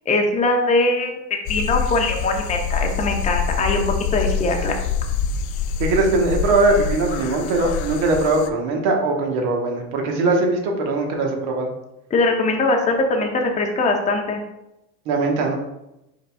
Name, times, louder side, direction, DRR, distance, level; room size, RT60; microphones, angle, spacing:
voice 1, 0.1-1.2 1.5-3.8 4.1-4.8 12.1-14.4, left 2 dB, 15° left, 2 dB, 0.6 m, -21 dB
sound 1, 1.5-8.5, left 6 dB, 70° left, 0.5 m, -26 dB
voice 2, 5.8-11.7 15.1-15.6, right 2 dB, 55° right, 1 dB, 1.2 m, -20 dB
5.2 x 3.9 x 2.3 m, 0.89 s
supercardioid pair, 115°, 44 cm